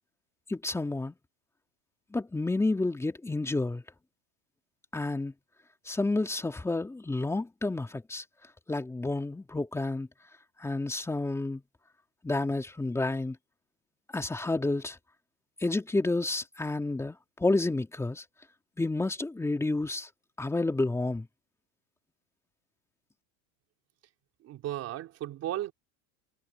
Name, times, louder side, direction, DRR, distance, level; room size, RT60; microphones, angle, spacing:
voice 1, 0.5-1.1 2.1-3.8 4.9-5.3 5.9-8.2 8.7-10.1 10.6-11.6 12.2-13.4 14.1-15.0 15.6-18.2 18.8-20.1 20.4-21.3, left 2 dB, 5° left, 3.0 m, -30 dB
voice 2, 24.4-25.7, right 13 dB, 40° right, 3.8 m, -35 dB
cardioid pair, 155°, 38 cm